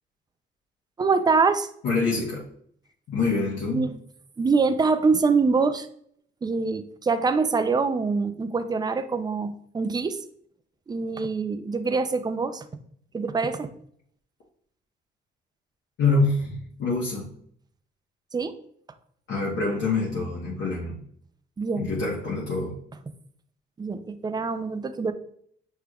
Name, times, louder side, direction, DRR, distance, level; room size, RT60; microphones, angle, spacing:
voice 1, 1.0-1.7 3.7-3.9 4.4-5.9 6.4-10.2 10.9-12.6 13.1-13.7 18.3-18.5 21.6-21.9 23.8-25.1, right 4 dB, 20° right, 10 dB, 0.4 m, -24 dB
voice 2, 1.8-2.4 3.1-3.9 16.0-17.3 19.3-21.0 21.7-22.8, left 3 dB, 70° left, -5 dB, 1.1 m, -26 dB
6.2 x 3.4 x 2.3 m, 0.65 s
cardioid pair, 90°, 20 cm